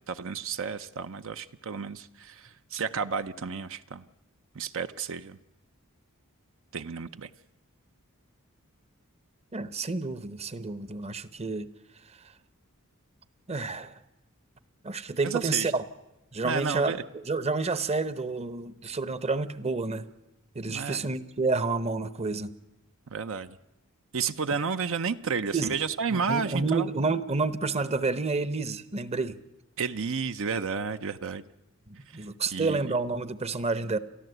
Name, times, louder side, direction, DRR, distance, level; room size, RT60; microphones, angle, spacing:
voice 1, 0.1-4.0 4.5-5.4 6.7-7.3 15.2-15.7 16.4-17.0 20.7-21.1 23.1-23.6 24.1-26.9 29.8-31.4 32.1-32.9, right 5 dB, 65° right, 11 dB, 0.7 m, -32 dB
voice 2, 9.5-11.7 13.5-13.9 14.8-15.8 16.3-20.1 20.5-22.5 25.5-25.8 26.1-29.4 31.9-34.0, right 3 dB, 30° right, 14 dB, 0.9 m, -29 dB
29.5 x 13.5 x 8.0 m, 0.97 s
head